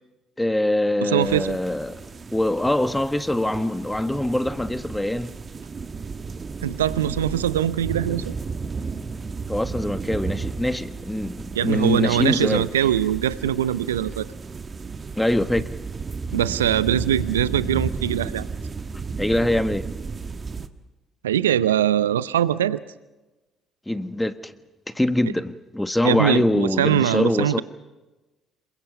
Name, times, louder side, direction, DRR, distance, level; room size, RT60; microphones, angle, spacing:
voice 1, 0.4-1.9 2.3-5.3 9.5-12.7 15.2-15.7 18.9-19.9 23.9-24.5 24.9-27.6, left 1 dB, 10° left, 1.5 m, -23 dB
voice 2, 1.0-1.6 6.6-8.3 11.5-14.3 16.3-18.5 21.2-22.8 26.0-27.6, right 10 dB, 85° right, 0.7 m, -22 dB
sound 1, 1.2-20.7, right 4 dB, 35° right, 1.5 m, -33 dB
27.0 x 23.5 x 5.6 m
hypercardioid pair, 50°, 0 cm